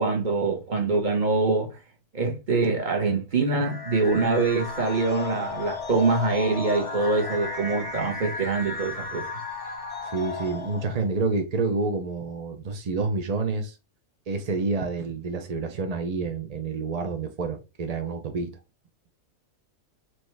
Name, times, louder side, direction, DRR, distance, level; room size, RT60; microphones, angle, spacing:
voice 1, 0.0-1.8 2.1-9.3, right 3 dB, 35° right, 1.1 m, -24 dB
sound 1, 3.5-11.1, left 4 dB, 30° left, 0.8 m, -35 dB
voice 2, 10.1-13.8 14.3-18.5, right 3 dB, 55° right, 0.4 m, -28 dB
4.4 x 3.0 x 3.2 m
omnidirectional pair, 1.5 m